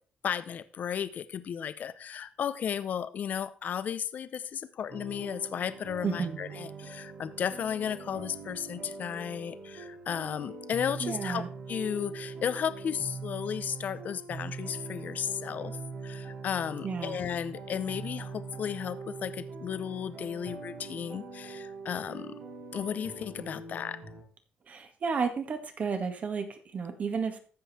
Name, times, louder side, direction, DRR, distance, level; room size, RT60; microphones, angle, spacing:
voice 1, 0.2-15.8 16.0-22.4 22.7-24.0, left 8 dB, 60° left, 13 dB, 0.7 m, -34 dB
sound 1, 4.9-24.2, right 4 dB, 75° right, 6.0 m, -42 dB
voice 2, 6.0-6.4 11.0-11.5 16.8-17.2 24.7-27.4, right 5 dB, 50° right, 7 dB, 1.9 m, -32 dB
14.5 x 5.4 x 4.3 m, 0.41 s
cardioid pair, 75°, 3 cm